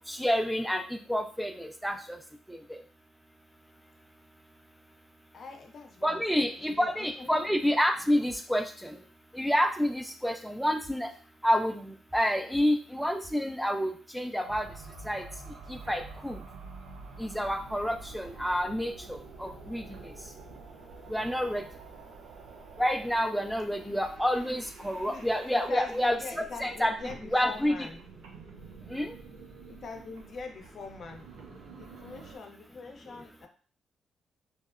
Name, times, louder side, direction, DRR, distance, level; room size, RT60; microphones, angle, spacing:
voice 1, 0.1-2.2 2.5-2.8 6.0-9.0 9.3-11.1 11.4-11.9 12.1-14.7 15.1-15.2 15.7-16.4 17.2-19.8 21.1-21.6 22.8-26.9 27.3-27.8 28.9-29.1, equal, ahead, 5 dB, 0.3 m, -28 dB
voice 2, 5.3-6.9 7.2-7.4 23.9-24.0 25.0-25.3 25.5-28.0 29.7-31.3 31.7-33.5, left 4 dB, 60° left, 4 dB, 0.5 m, -43 dB
sound 1, 8.3-8.4 8.8-8.9 10.8-11.2 12.1-12.2 12.5-12.6 13.2-13.4 14.9-15.0 15.3-15.7, right 1 dB, 40° right, 1.2 m, -50 dB
sound 2, 14.5-32.4, right 4 dB, 85° right, 0.4 m, -48 dB
2.7 x 2.0 x 2.4 m, 0.41 s
supercardioid pair, 60°, 0 cm